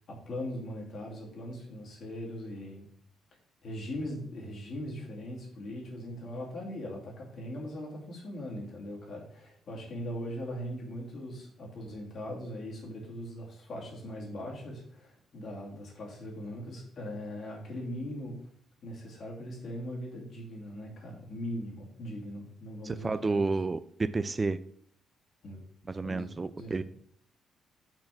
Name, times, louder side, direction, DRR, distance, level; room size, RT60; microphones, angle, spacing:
voice 1, 0.1-2.9 3.6-18.5 18.8-23.5 25.4-25.6 25.9-26.3 26.6-26.8, equal, 55° left, 2.5 m, -40 dB
voice 2, 22.8-24.6 25.9-26.8, right 3 dB, 25° right, 0.3 m, -30 dB
6.0 x 4.3 x 6.0 m
cardioid pair, 90°, 0 cm